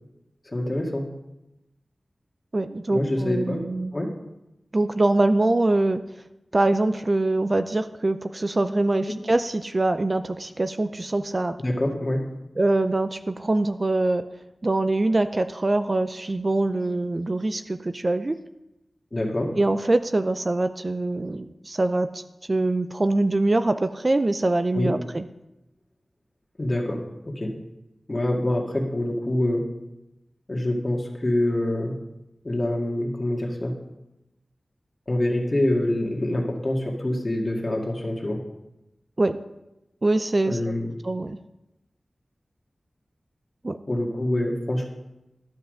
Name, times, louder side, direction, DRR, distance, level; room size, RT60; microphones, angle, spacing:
voice 1, 0.5-1.1 2.9-3.7 3.9-4.1 11.6-12.2 19.1-19.5 24.7-25.0 26.6-27.6 28.1-29.7 30.5-32.0 32.4-33.7 35.1-38.4 40.4-40.9 43.9-44.9, left 1 dB, 35° left, 0 dB, 2.0 m, -25 dB
voice 2, 2.5-3.9 4.7-6.0 6.5-11.6 12.6-14.3 14.6-18.4 19.6-22.2 22.5-25.3 39.2-39.4 40.0-40.7 41.0-41.4 43.6-43.8, right 2 dB, 40° right, 10 dB, 0.4 m, -23 dB
12.0 x 5.6 x 6.5 m, 0.93 s
wide cardioid pair, 75°, 0 cm